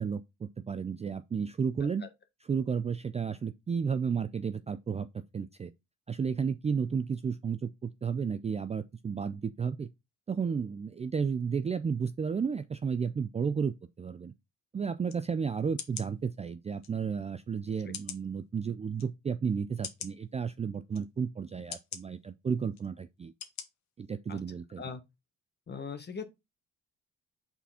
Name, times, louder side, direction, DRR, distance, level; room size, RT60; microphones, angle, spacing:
voice 1, 0.0-2.0 2.5-5.1 5.3-5.7 6.1-9.9 10.3-14.3 14.7-23.3 24.0-24.8, right 6 dB, 20° right, 0.4 m, -32 dB
sound 1, 15.1-15.2 15.8-16.1 16.8-16.9 17.9-18.3 19.0-19.1 19.8-20.1 20.9-21.0 21.7-22.0 22.7-22.9 23.4-23.7 24.1-24.2, left 8 dB, 65° left, 1.2 m, -41 dB
voice 2, 25.7-26.2, left 5 dB, 35° left, 1.4 m, -40 dB
5.8 x 4.2 x 4.3 m
cardioid pair, 90°, 30 cm